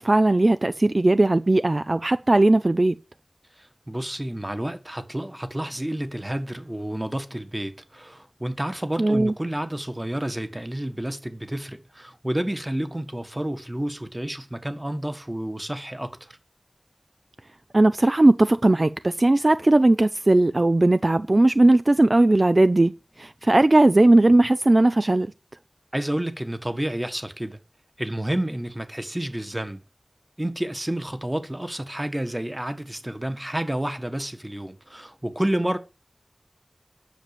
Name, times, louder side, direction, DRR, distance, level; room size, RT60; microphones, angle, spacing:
voice 1, 0.0-2.9 9.0-9.3 17.7-22.9 23.2-25.3, right 2 dB, 50° right, 0.5 m, -18 dB
voice 2, 3.6-16.4 25.9-27.6 28.0-29.8 30.4-35.8, right 1 dB, 20° right, 1.6 m, -30 dB
10.0 x 7.0 x 6.9 m
wide cardioid pair, 45°, 0 cm